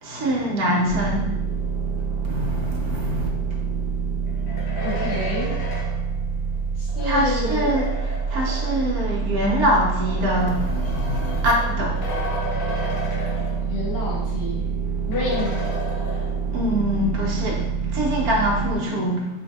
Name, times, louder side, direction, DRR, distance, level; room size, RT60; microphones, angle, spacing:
voice 1, 0.0-1.3 2.3-3.3 7.0-12.0 16.5-19.3, equal, 65° right, -3 dB, 1.3 m, -24 dB
sound 1, 0.9-18.8, right 5 dB, 90° right, 1.2 m, -26 dB
sound 2, 4.3-9.0 9.9-14.1 14.4-14.5 15.1-16.7, left 2 dB, 70° left, 0.5 m, -34 dB
voice 2, 4.8-5.5 6.7-7.7 13.7-14.6 15.1-15.6, left 3 dB, 40° left, -5 dB, 1.1 m, -28 dB
4.3 x 2.7 x 2.3 m, 0.94 s
omnidirectional pair, 1.8 m